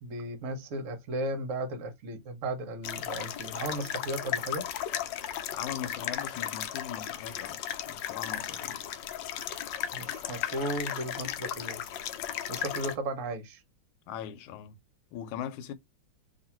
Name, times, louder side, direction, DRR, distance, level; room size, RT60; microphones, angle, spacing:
voice 1, 0.0-4.6 9.9-11.8 12.5-13.6, right 1 dB, 55° right, 0.9 m, -35 dB
sound 1, 2.8-13.0, left 10 dB, 75° left, 1.1 m, -35 dB
voice 2, 5.5-8.8 14.1-14.8 15.1-15.7, left 9 dB, 90° left, 1.5 m, -40 dB
3.0 x 2.7 x 4.3 m
omnidirectional pair, 2.3 m